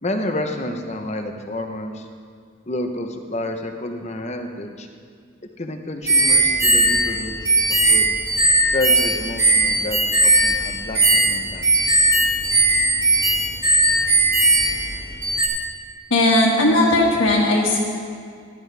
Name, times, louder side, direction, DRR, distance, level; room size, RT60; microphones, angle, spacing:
voice 1, 0.0-2.1 2.7-4.9 5.6-7.5 7.9-8.1 8.7-11.6, left 1 dB, 35° left, 5 dB, 0.8 m, -29 dB
sound 1, 6.1-15.5, right 2 dB, 15° right, 1.4 m, -18 dB
voice 2, 16.1-17.8, left 1 dB, 75° left, -4 dB, 1.7 m, -17 dB
15.5 x 11.5 x 3.4 m, 2.2 s
head